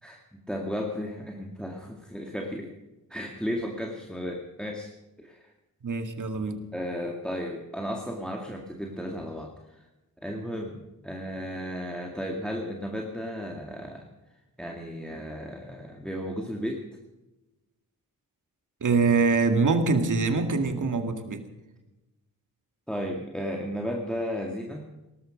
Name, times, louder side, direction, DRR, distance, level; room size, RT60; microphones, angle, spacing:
voice 1, 0.0-2.7 3.1-4.9 5.2-5.5 6.7-9.9 10.2-14.1 14.6-16.8 22.9-24.9, equal, ahead, 1 dB, 2.1 m, -34 dB
voice 2, 5.8-6.7 18.8-21.4, right 4 dB, 55° right, 6 dB, 2.1 m, -24 dB
18.5 x 13.5 x 5.2 m, 1.0 s
cardioid pair, 70°, 37 cm